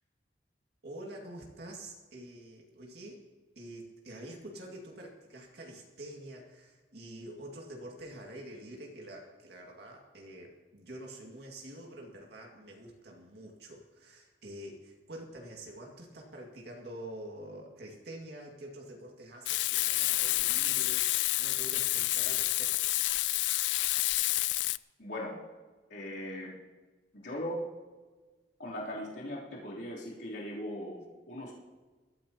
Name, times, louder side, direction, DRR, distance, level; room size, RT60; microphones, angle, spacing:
voice 1, 0.8-3.3 3.6-23.3, right 1 dB, 65° right, -1 dB, 2.2 m, -47 dB
Frying (food), 19.5-24.8, left 18 dB, 90° left, 0.3 m, -29 dB
voice 2, 25.0-25.4 25.9-26.5 27.1-27.6 28.6-31.5, equal, 75° left, -6 dB, 3.4 m, -39 dB
21.5 x 14.0 x 2.9 m, 1.3 s
head